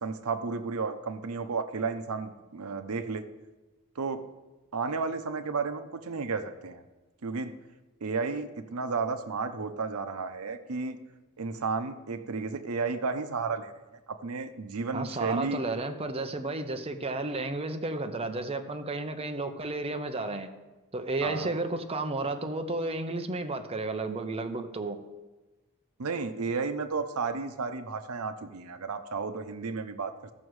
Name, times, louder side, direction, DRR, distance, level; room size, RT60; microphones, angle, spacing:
voice 1, 0.0-3.2 4.0-4.3 4.7-6.8 7.2-7.5 8.0-11.0 11.4-13.7 14.2-15.8 21.2-21.5 26.0-30.1, right 4 dB, 90° right, 10 dB, 0.7 m, -32 dB
voice 2, 14.9-20.5 20.9-25.0, right 2 dB, 30° right, 7 dB, 0.7 m, -32 dB
14.0 x 6.3 x 4.7 m, 1.2 s
head